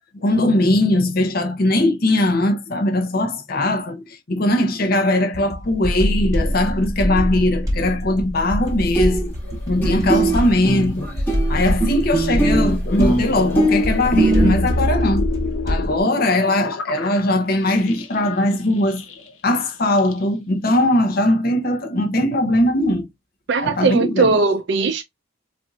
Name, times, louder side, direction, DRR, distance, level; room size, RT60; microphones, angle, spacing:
voice 1, 0.1-9.4 9.6-11.2 11.5-15.3 15.6-19.0 19.4-23.1 23.6-24.4, left 1 dB, 45° left, 0.6 m, -20 dB
sound 1, 5.3-16.0, equal, 15° right, 1.3 m, -24 dB
sound 2, 8.6-8.7 9.0-9.6 9.8-14.5, right 1 dB, 10° left, 1.1 m, -20 dB
sound 3, 13.0-19.3 19.7-20.2 21.7-21.8, left 4 dB, 75° left, 0.9 m, -31 dB
voice 2, 23.5-25.0, right 4 dB, 55° right, 0.4 m, -19 dB
4.3 x 2.5 x 2.3 m
head